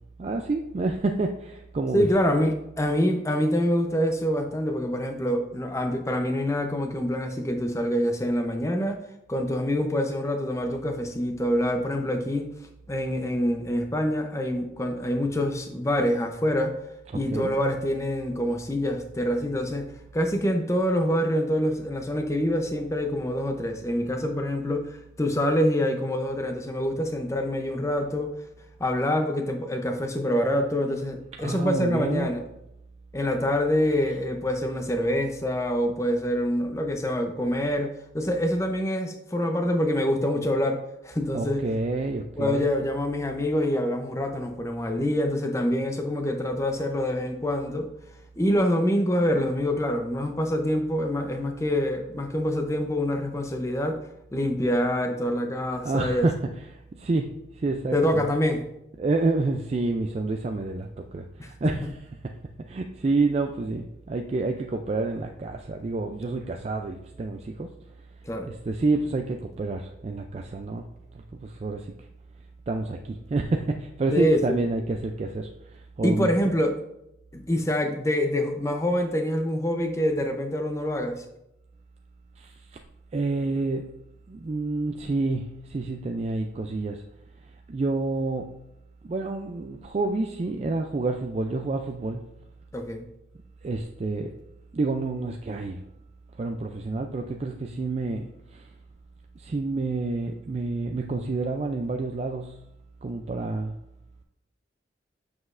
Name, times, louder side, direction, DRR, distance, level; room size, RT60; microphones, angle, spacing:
voice 1, 0.2-2.1 17.1-17.5 31.4-32.4 41.3-42.7 55.8-58.2 59.0-62.1 62.7-67.7 68.5-70.8 71.4-71.9 72.7-76.3 82.4-82.5 83.1-83.9 84.3-87.0 87.7-88.6 89.1-92.2 93.6-94.3 94.7-95.8 96.4-98.6 99.4-102.5 103.0-103.7, right 3 dB, 35° right, 4 dB, 0.3 m, -28 dB
voice 2, 1.9-9.0 9.3-12.5 12.9-16.7 17.1-19.9 20.1-28.3 28.8-32.4 33.1-41.6 42.4-47.9 48.4-54.0 54.3-56.3 57.9-58.6 61.4-61.5 68.2-68.5 74.1-74.6 76.0-76.7 77.3-81.2 92.7-93.1, equal, 15° left, 5 dB, 0.6 m, -26 dB
7.3 x 6.1 x 2.5 m, 0.85 s
head